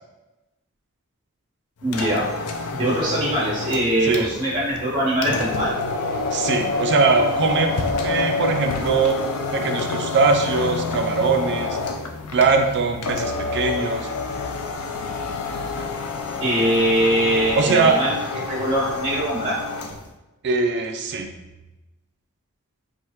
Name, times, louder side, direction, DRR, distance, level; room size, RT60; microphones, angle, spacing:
sound 1, 1.8-20.1, left 3 dB, 75° left, 0.4 m, -28 dB
voice 1, 1.8-2.3 2.7-5.7 16.4-19.8, right 1 dB, 25° right, -9 dB, 1.4 m, -22 dB
voice 2, 6.3-7.7 8.0-9.2 9.5-11.8 12.3-14.1 17.5-18.0 20.4-21.3, right 4 dB, 50° right, 4 dB, 0.4 m, -21 dB
4.7 x 2.3 x 2.9 m, 1.0 s
head